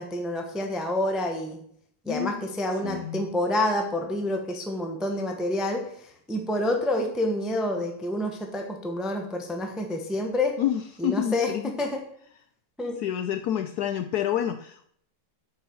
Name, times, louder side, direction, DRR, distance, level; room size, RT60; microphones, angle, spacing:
voice 1, 0.0-1.6 2.0-10.6 11.0-12.0 12.8-13.0, left 1 dB, ahead, 3 dB, 0.8 m, -28 dB
voice 2, 2.1-2.5 2.8-3.2 10.6-11.7 13.0-14.9, left 11 dB, 70° left, 8 dB, 1.0 m, -28 dB
8.0 x 5.6 x 7.0 m, 0.66 s
omnidirectional pair, 1.9 m